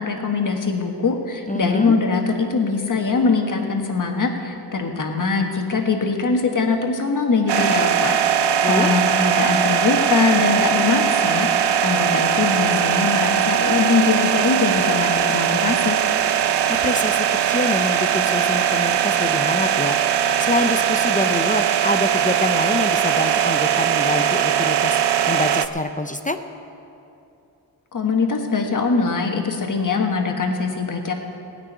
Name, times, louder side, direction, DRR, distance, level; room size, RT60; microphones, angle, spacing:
voice 1, 0.0-8.2 8.7-16.0 27.9-31.1, left 4 dB, 50° left, 3 dB, 1.5 m, -22 dB
voice 2, 1.5-2.0 8.6-8.9 16.7-25.0 25.3-26.4, left 2 dB, 20° left, 8 dB, 0.5 m, -26 dB
sound 1, 7.5-25.7, right 8 dB, 85° right, 0.6 m, -20 dB
17.0 x 6.2 x 9.8 m, 2.7 s
wide cardioid pair, 150°, 40 cm